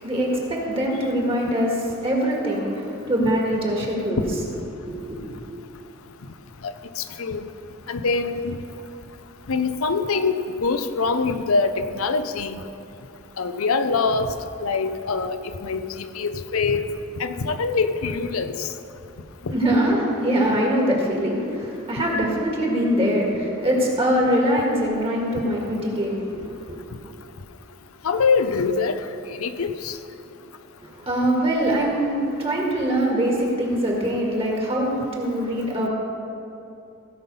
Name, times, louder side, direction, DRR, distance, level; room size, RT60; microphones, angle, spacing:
voice 1, 0.0-4.4 4.8-5.2 19.5-26.8 30.8-35.9, equal, 25° right, -2 dB, 1.8 m, -23 dB
voice 2, 6.6-7.4 7.9-8.6 9.5-12.6 13.4-14.3 14.6-16.8 17.2-18.7 19.5-19.6 28.0-29.0 29.3-30.0, left 4 dB, 85° left, 10 dB, 0.6 m, -24 dB
16.0 x 5.8 x 5.4 m, 2.7 s
head